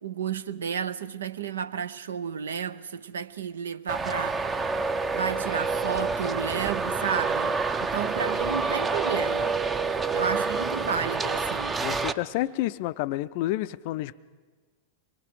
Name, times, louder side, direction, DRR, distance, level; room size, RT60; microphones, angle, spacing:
voice 1, 0.0-4.7 5.1-9.6 10.1-11.8, right 7 dB, 65° right, 0.7 m, -32 dB
Traffic noise roadway noise, 3.9-12.1, right 4 dB, 15° right, 0.7 m, -28 dB
voice 2, 11.8-14.2, left 16 dB, 50° left, 0.5 m, -29 dB
24.5 x 21.0 x 5.0 m
figure-of-eight pair, 90°, 0 cm